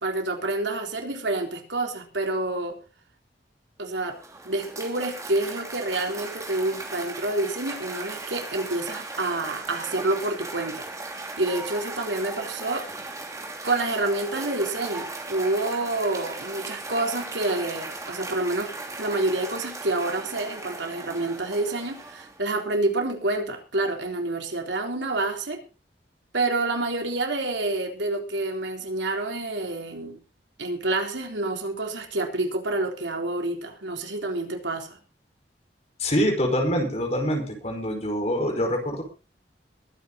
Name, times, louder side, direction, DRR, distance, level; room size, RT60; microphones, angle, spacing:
voice 1, 0.0-2.8 3.8-4.2 4.4-10.9 11.4-12.8 13.6-18.7 19.0-25.6 26.3-30.2 30.6-35.0, right 2 dB, 85° right, 4 dB, 3.8 m, -28 dB
Cheering / Applause, 3.9-22.6, right 2 dB, 20° right, 3.2 m, -37 dB
voice 2, 36.0-39.0, equal, 35° left, 4 dB, 5.1 m, -25 dB
22.0 x 9.8 x 4.1 m, 0.33 s
head